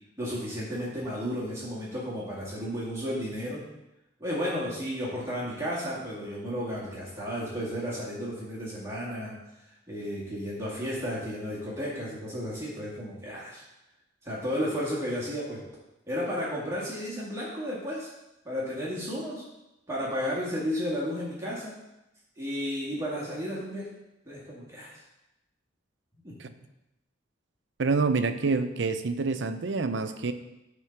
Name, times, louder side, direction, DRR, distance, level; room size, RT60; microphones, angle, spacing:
voice 1, 0.2-3.6 4.2-9.3 9.9-13.6 14.2-15.6 16.1-18.1 18.5-19.4 19.9-21.7 22.4-23.9 24.3-25.0 26.2-26.6, equal, 15° right, -7 dB, 2.0 m, -33 dB
voice 2, 27.8-30.3, right 4 dB, 70° right, 9 dB, 0.6 m, -27 dB
10.5 x 3.8 x 5.8 m, 0.93 s
head